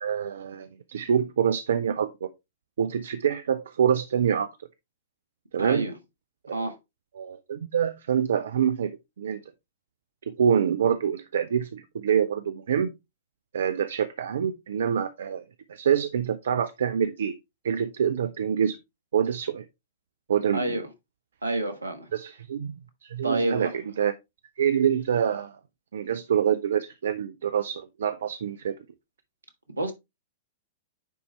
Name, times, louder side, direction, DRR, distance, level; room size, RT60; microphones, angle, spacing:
voice 1, 0.0-2.3 2.8-4.5 5.5-5.9 7.2-8.9 9.2-9.4 10.3-12.9 13.5-15.4 15.7-17.3 17.6-18.8 19.1-19.6 20.3-20.7 22.1-23.7 24.0-24.1 24.6-25.6 25.9-28.8, right 8 dB, 65° right, 0.5 m, -26 dB
voice 2, 5.6-5.9 6.5-6.8 20.5-20.9 21.4-22.1 23.2-23.7 29.8-29.9, right 2 dB, 80° right, 1.4 m, -28 dB
9.9 x 4.1 x 3.1 m
figure-of-eight pair, 105°, 0 cm